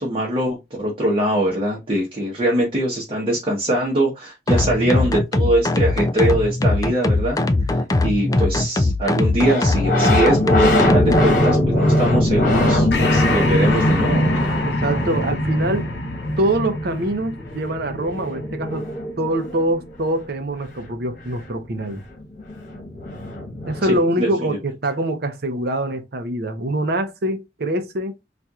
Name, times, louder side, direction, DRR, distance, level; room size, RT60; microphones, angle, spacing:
voice 1, 0.0-7.4 7.7-14.6 23.8-24.3, right 1 dB, 30° right, 1.0 m, -22 dB
sound 1, 4.5-11.3, left 2 dB, 20° left, 0.3 m, -20 dB
sound 2, 9.4-19.8 21.9-22.0 22.2-24.0, left 1 dB, 50° left, 1.3 m, -21 dB
Breathing, 12.9-17.8, left 4 dB, 65° left, 0.6 m, -31 dB
voice 2, 14.7-15.9 16.4-18.9 19.2-22.0 23.7-28.2, right 1 dB, 60° right, 0.7 m, -24 dB
4.3 x 2.5 x 2.3 m
head